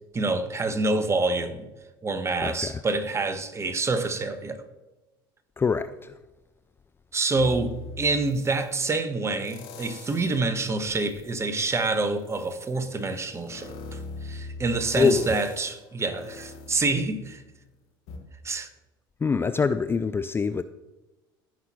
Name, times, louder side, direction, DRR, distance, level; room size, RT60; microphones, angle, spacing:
voice 1, 0.1-1.7 2.0-4.6 7.1-17.4 18.4-18.7, right 3 dB, 25° right, 10 dB, 1.1 m, -27 dB
voice 2, 2.4-2.8 5.6-6.1 15.0-15.4 19.2-20.6, left 5 dB, 20° left, 12 dB, 0.4 m, -24 dB
sound 1, 7.4-8.8 9.4-10.5 10.9-17.6 18.1-18.2, left 3 dB, 70° left, 1.8 m, -42 dB
15.5 x 5.7 x 3.0 m, 1.1 s
hypercardioid pair, 80°, 11 cm